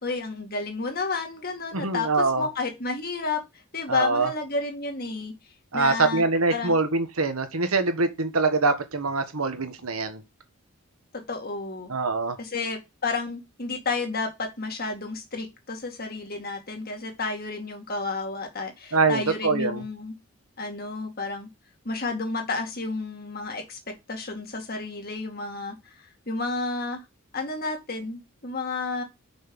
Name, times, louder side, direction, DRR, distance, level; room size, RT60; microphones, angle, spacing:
voice 1, 0.0-3.4 3.7-5.3 5.7-6.2 6.5-6.8 11.1-11.9 12.4-20.1 20.6-21.5 21.8-23.8 24.1-25.9 26.3-27.0 27.3-29.0, left 3 dB, 45° left, 2.1 m, -31 dB
voice 2, 1.7-2.5 3.9-4.3 5.7-10.2 11.9-12.4 18.9-19.8, right 3 dB, 80° right, 1.6 m, -24 dB
6.2 x 5.5 x 6.2 m
head